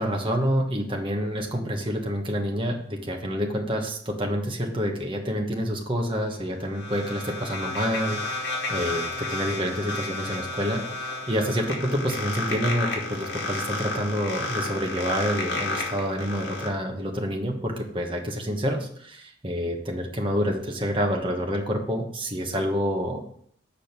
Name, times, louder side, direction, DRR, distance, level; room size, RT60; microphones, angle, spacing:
voice 1, 0.0-23.3, equal, 30° right, 2 dB, 1.3 m, -28 dB
sound 1, 6.2-16.7, left 2 dB, 75° left, 2.2 m, -32 dB
6.8 x 5.0 x 5.9 m, 0.63 s
head